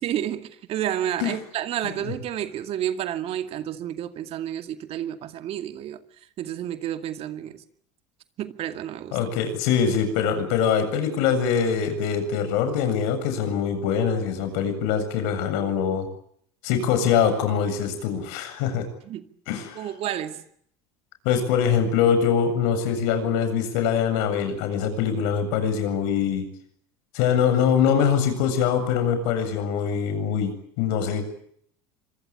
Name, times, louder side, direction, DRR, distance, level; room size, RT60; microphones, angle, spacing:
voice 1, 0.0-6.0 6.4-7.6 8.4-9.2 19.0-19.2 19.8-20.5, right 11 dB, 50° right, 2.2 m, -30 dB
voice 2, 9.1-16.1 16.6-18.8 19.5-19.8 21.2-26.5 27.1-31.3, left 7 dB, 70° left, 7.7 m, -23 dB
26.0 x 22.5 x 8.8 m
supercardioid pair, 100°, 13 cm